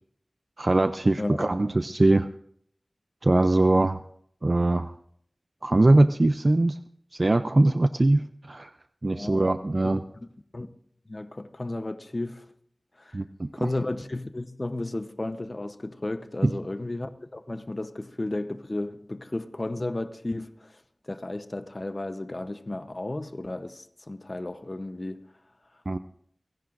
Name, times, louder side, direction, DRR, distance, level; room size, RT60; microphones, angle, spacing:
voice 1, 0.6-2.3 3.2-4.0 4.4-4.9 5.6-6.8 7.1-8.2 8.5-8.7 9.0-10.0 13.1-13.7 16.4-16.5 25.9-26.0, right 2 dB, 50° right, 0.4 m, -21 dB
voice 2, 1.2-1.5 9.1-9.5 9.8-10.3 10.5-10.7 11.1-12.5 13.0-13.2 13.5-25.2, left 2 dB, 40° left, 0.8 m, -34 dB
30.0 x 10.5 x 2.5 m
wide cardioid pair, 65°, 0 cm